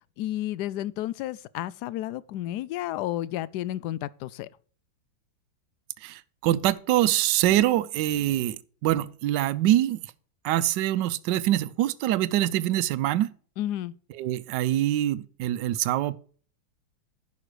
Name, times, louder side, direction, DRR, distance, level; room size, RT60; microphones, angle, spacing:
voice 1, 0.2-4.5 13.6-13.9, left 13 dB, 75° left, 1.0 m, -31 dB
voice 2, 6.0-10.0 10.4-13.3 14.1-16.2, right 13 dB, 75° right, 1.2 m, -24 dB
10.5 x 5.9 x 4.9 m
omnidirectional pair, 2.1 m